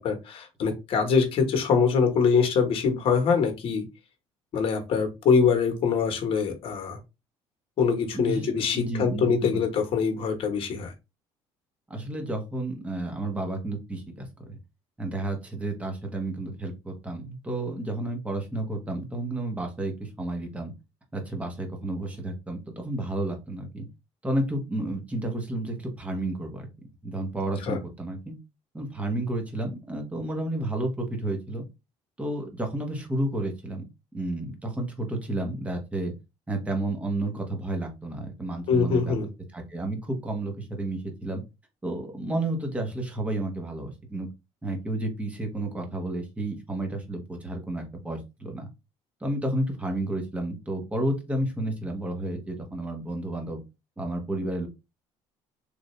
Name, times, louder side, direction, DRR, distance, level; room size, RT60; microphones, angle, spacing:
voice 1, 0.0-3.8 4.5-7.0 7.8-10.9 27.7-27.8 38.7-39.3, left 5 dB, 50° left, 5 dB, 1.2 m, -24 dB
voice 2, 8.1-8.5 8.7-9.6 11.9-14.6 15.0-20.7 21.1-23.9 24.2-26.7 27.0-28.3 28.7-31.6 32.2-33.8 34.1-36.1 36.5-39.1 39.5-41.4 41.8-44.3 44.6-48.7 49.2-53.6 54.0-54.7, right 1 dB, 10° right, 3 dB, 1.1 m, -31 dB
3.3 x 2.6 x 3.1 m, 0.25 s
cardioid pair, 120°, 12 cm